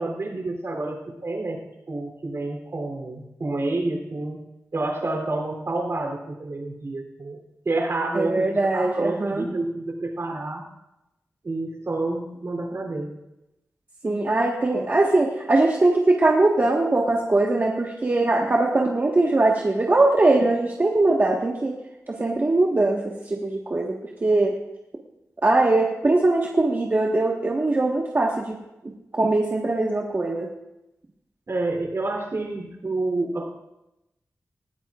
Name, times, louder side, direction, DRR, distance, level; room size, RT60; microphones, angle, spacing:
voice 1, 0.0-1.6 1.9-4.4 4.7-7.4 7.6-10.6 11.4-13.1 31.5-33.5, right 2 dB, 55° right, 1 dB, 3.4 m, -28 dB
voice 2, 8.1-9.5 14.0-21.7 22.1-24.6 25.4-28.6 28.8-30.5, right 2 dB, 35° right, -2 dB, 1.5 m, -21 dB
20.0 x 16.0 x 2.5 m, 0.92 s
wide cardioid pair, 105°, 6 cm